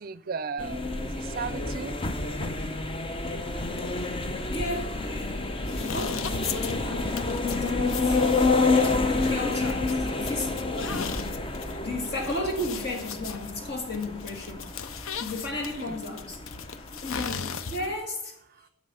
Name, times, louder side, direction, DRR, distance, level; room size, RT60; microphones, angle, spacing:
voice 1, 0.0-2.0 10.8-11.2 15.8-15.9, right 5 dB, 45° right, 0.5 m, -36 dB
sound 1, 0.6-17.9, left 3 dB, 25° left, 0.6 m, -29 dB
voice 2, 4.5-5.1 5.7-8.2 8.8-11.3 11.8-14.7 15.2-16.4 17.0-18.4, left 2 dB, 55° left, 2.1 m, -34 dB
sound 2, 5.6-18.1, left 7 dB, 85° left, 0.6 m, -38 dB
8.4 x 6.2 x 5.5 m
head